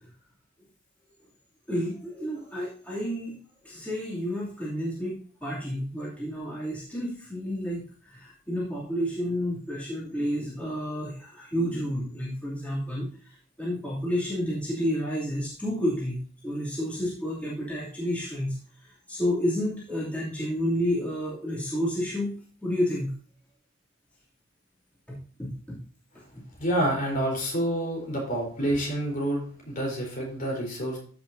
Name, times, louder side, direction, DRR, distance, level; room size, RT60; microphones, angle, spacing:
voice 1, 1.7-3.4 3.6-23.1 25.1-25.8 26.3-26.4, equal, 5° left, -8 dB, 2.9 m, -30 dB
voice 2, 26.6-31.0, right 1 dB, 45° left, -1 dB, 4.1 m, -28 dB
14.5 x 6.2 x 2.8 m, 0.43 s
head